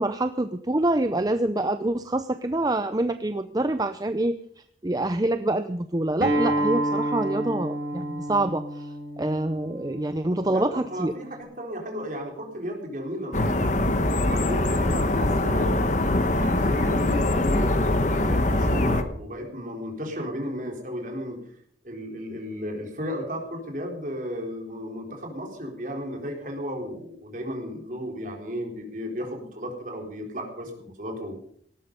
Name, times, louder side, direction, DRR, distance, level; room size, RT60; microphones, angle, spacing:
voice 1, 0.0-4.4 4.8-8.9 9.2-11.1, right 1 dB, 20° right, 10 dB, 0.5 m, -26 dB
Acoustic guitar, 6.2-11.4, right 1 dB, 75° right, 6.4 m, -30 dB
voice 2, 10.5-13.9 14.2-16.0 16.4-21.4 21.8-31.4, equal, 45° right, 1 dB, 4.2 m, -34 dB
sound 1, 13.3-19.0, left 1 dB, 40° left, 1.2 m, -23 dB
18.0 x 13.5 x 5.4 m, 0.63 s
head